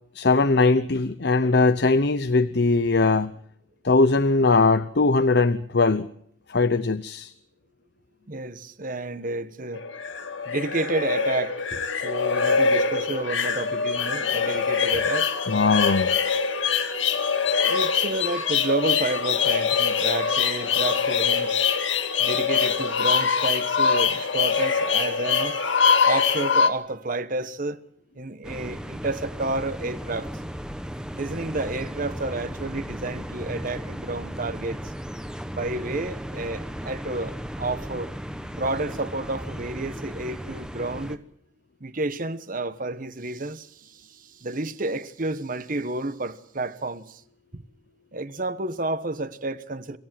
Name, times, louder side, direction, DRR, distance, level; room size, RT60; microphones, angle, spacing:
voice 1, 0.1-3.3 3.8-6.1 6.5-7.3 15.5-16.2, left 3 dB, 60° left, 0.8 m, -20 dB
voice 2, 8.3-9.8 10.4-15.3 17.6-21.7 22.2-25.6 26.1-27.8 28.1-30.3 31.1-34.8 35.5-38.1 38.5-41.2 41.8-47.2 47.5-47.6 48.1-50.0, right 2 dB, 45° right, 1.2 m, -30 dB
sound 1, 9.7-26.7, left 6 dB, 85° left, 1.9 m, -23 dB
sound 2, 28.4-41.2, equal, 5° right, 1.2 m, -36 dB
26.5 x 15.0 x 7.6 m
head